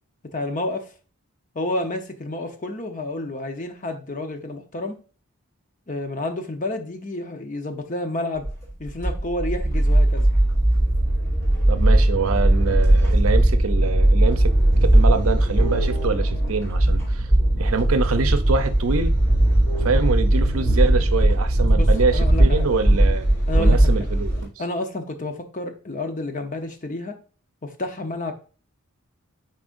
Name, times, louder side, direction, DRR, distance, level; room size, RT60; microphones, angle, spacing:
voice 1, 0.3-0.9 1.5-4.9 5.9-8.5 8.8-10.3 21.7-22.7 23.5-23.9 24.6-27.1 27.6-28.3, left 2 dB, 35° left, 0.8 m, -30 dB
sound 1, 8.4-24.4, right 1 dB, 10° left, 3.8 m, -18 dB
voice 2, 11.7-14.5 14.9-17.3 17.6-19.2 19.8-24.5, right 4 dB, 75° right, 0.7 m, -25 dB
9.9 x 4.3 x 2.6 m
head